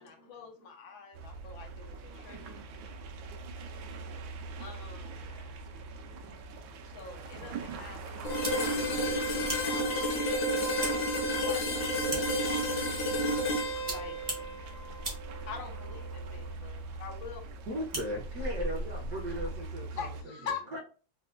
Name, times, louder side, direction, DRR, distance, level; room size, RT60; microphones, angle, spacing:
voice 1, 0.0-2.6 4.6-5.2 6.8-12.3 13.9-14.2 15.5-17.5 20.0-20.8, left 6 dB, 90° left, 1.6 m, -45 dB
sound 1, 1.1-20.2, right 3 dB, 85° right, 1.4 m, -43 dB
voice 2, 5.2-5.6 10.4-10.5 14.6-15.1 16.4-16.7, left 3 dB, 55° left, 1.0 m, -59 dB
sound 2, 8.2-16.1, equal, 70° left, 1.6 m, -31 dB
sound 3, 8.2-19.7, right 1 dB, 20° right, 0.6 m, -42 dB
voice 3, 17.7-20.1 20.7-20.8, equal, 65° right, 0.9 m, -36 dB
4.2 x 2.2 x 2.4 m
omnidirectional pair, 2.1 m